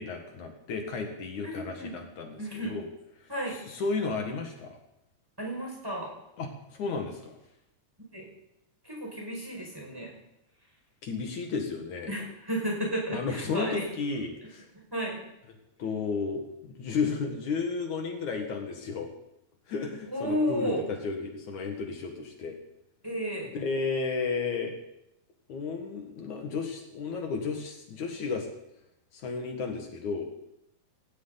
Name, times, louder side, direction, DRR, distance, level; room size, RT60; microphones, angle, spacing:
voice 1, 0.0-2.4 2.7-2.9 3.7-4.8 6.4-7.4 11.0-12.1 13.1-14.7 15.8-19.1 19.7-22.6 23.5-24.8 25.5-28.5 29.1-30.3, left 4 dB, 70° left, 2 dB, 3.2 m, -33 dB
voice 2, 1.4-2.0 2.4-2.8 3.3-3.6 5.4-6.1 8.1-8.3 8.8-10.1 12.1-13.9 14.7-15.2 20.1-20.8 23.0-23.5, equal, 5° right, -2 dB, 5.6 m, -32 dB
18.5 x 17.5 x 4.1 m, 0.83 s
omnidirectional pair, 3.5 m